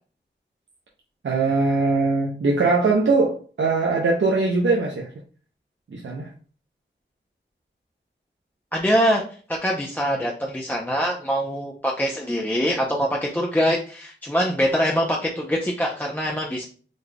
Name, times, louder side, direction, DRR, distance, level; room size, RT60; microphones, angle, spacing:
voice 1, 1.2-5.1 5.9-6.3, right 3 dB, 75° right, -2 dB, 0.7 m, -21 dB
voice 2, 8.7-9.2 9.5-13.1 13.3-16.6, equal, 10° left, -2 dB, 0.6 m, -23 dB
4.0 x 3.2 x 2.2 m, 0.41 s
wide cardioid pair, 60°, 20 cm